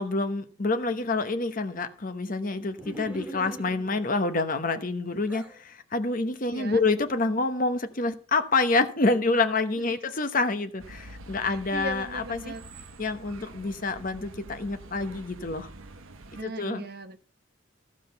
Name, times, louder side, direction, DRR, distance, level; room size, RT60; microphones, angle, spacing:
voice 1, 0.0-12.5 13.0-15.7 16.4-16.8, left 3 dB, 40° left, 0.9 m, -27 dB
sound 1, 2.8-4.1 4.7-5.6, equal, 5° right, 1.9 m, -41 dB
voice 2, 6.5-6.8 11.4-12.6 16.3-17.2, right 1 dB, 45° right, 1.0 m, -38 dB
sound 2, 10.8-16.4, right 2 dB, 75° right, 0.9 m, -46 dB
14.5 x 4.9 x 6.8 m
head